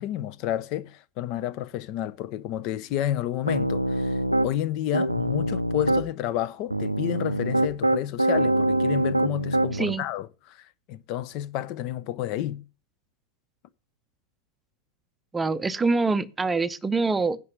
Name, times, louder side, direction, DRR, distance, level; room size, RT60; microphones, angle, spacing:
voice 1, 0.0-4.2 4.4-12.6, left 12 dB, 40° left, 0.6 m, -30 dB
Piano, 3.5-4.5 4.9-6.1 6.7-9.9, right 1 dB, 90° right, 0.5 m, -24 dB
voice 2, 9.7-10.1 15.3-17.4, right 3 dB, 10° right, 0.6 m, -25 dB
9.5 x 5.3 x 7.1 m
figure-of-eight pair, 90°, 0 cm